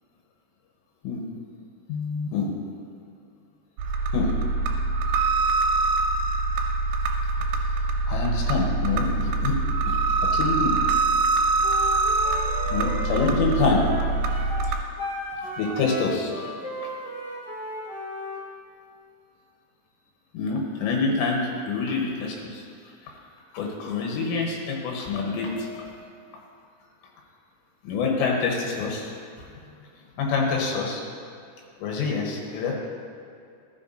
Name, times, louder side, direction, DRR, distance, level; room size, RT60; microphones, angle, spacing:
voice 1, 1.9-2.5 4.1-4.3 8.1-9.6 9.9-10.8 12.2-13.9 15.4-16.3 20.3-22.6 23.5-26.0 27.8-29.1 30.2-31.0 31.8-32.8, left 4 dB, 85° left, 0 dB, 3.2 m, -26 dB
sound 1, 3.8-14.7, right 3 dB, 75° right, 2.5 m, -24 dB
Wind instrument woodwind instrument, 11.6-18.4, equal, 35° left, 0.6 m, -35 dB
13.5 x 7.6 x 2.6 m, 2.4 s
omnidirectional pair, 5.0 m